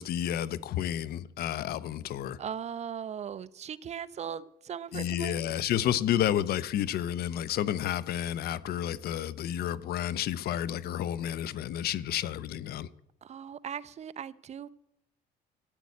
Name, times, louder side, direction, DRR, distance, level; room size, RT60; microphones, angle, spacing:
voice 1, 0.0-2.4 4.9-12.9, left 11 dB, 65° left, 0.7 m, -31 dB
voice 2, 2.4-5.4 13.2-14.7, right 8 dB, 40° right, 0.6 m, -38 dB
13.5 x 9.6 x 8.4 m
cardioid pair, 110°, 17 cm